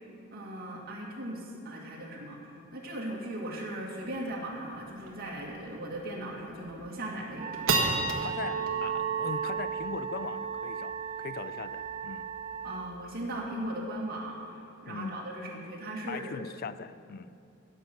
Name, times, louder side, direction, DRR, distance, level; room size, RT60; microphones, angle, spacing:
voice 1, 0.3-8.2 12.6-16.5, right 1 dB, 50° right, -3 dB, 2.3 m, -38 dB
sound 1, 4.2-4.3 4.5-4.6 5.0-5.3 5.8-5.9 6.4-6.8 7.2-13.8, right 4 dB, 75° right, 1.5 m, -34 dB
Wind instrument woodwind instrument, 7.4-12.9, right 6 dB, 30° right, 0.3 m, -38 dB
voice 2, 8.2-12.3 14.9-15.2 16.1-17.3, left 5 dB, 50° left, 15 dB, 0.4 m, -40 dB
16.5 x 7.4 x 6.2 m, 2.6 s
head